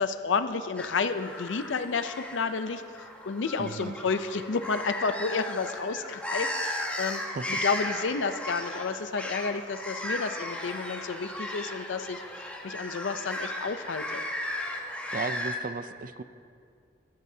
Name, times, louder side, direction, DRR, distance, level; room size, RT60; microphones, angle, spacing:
voice 1, 0.0-2.8 3.3-7.2 7.5-12.2 12.6-14.2, left 4 dB, 90° left, 10 dB, 0.5 m, -31 dB
sound 1, 0.8-15.6, left 1 dB, 10° left, 1.1 m, -36 dB
voice 2, 3.6-3.9 7.3-7.6 15.1-16.2, right 4 dB, 50° right, 12 dB, 0.5 m, -35 dB
22.0 x 12.0 x 2.8 m, 2.4 s
head